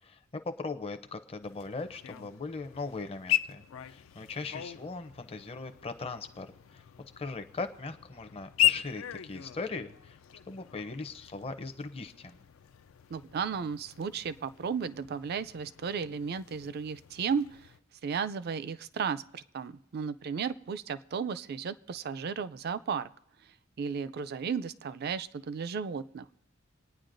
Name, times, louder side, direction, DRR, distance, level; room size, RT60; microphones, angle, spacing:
voice 1, 0.0-6.8 7.2-10.2 10.5-12.4, left 3 dB, 30° left, 6 dB, 0.6 m, -39 dB
sound 1, 1.4-17.8, left 15 dB, 75° left, 0.4 m, -37 dB
voice 2, 13.1-17.6 18.0-23.1 23.8-26.3, right 6 dB, 50° right, 14 dB, 0.4 m, -34 dB
27.5 x 9.5 x 2.6 m, 0.78 s
head